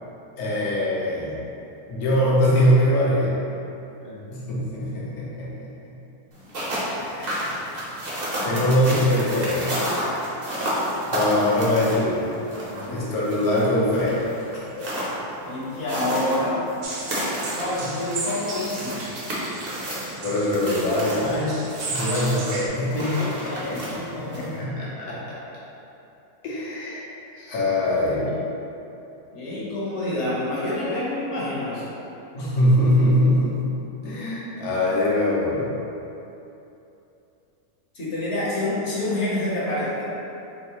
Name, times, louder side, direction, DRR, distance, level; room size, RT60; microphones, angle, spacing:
voice 1, 0.4-1.4 1.9-3.3 4.3-5.7 7.0-7.7 8.4-9.8 11.1-12.4 12.9-14.2 14.8-14.9 20.2-23.8 24.1-25.4 26.4-27.0 27.4-28.3 32.3-33.6 34.0-35.7, left 1 dB, 75° left, -7 dB, 1.4 m, -23 dB
sound 1, 6.3-24.6, equal, 45° right, 1.0 m, -31 dB
voice 2, 12.7-13.0 15.4-16.6 17.5-19.1 23.4-24.6 29.3-31.8 37.9-40.0, left 1 dB, 50° left, -8 dB, 1.2 m, -28 dB
sound 2, 16.8-22.7, right 3 dB, 65° right, 0.9 m, -35 dB
4.5 x 3.1 x 3.0 m, 2.9 s
omnidirectional pair, 1.6 m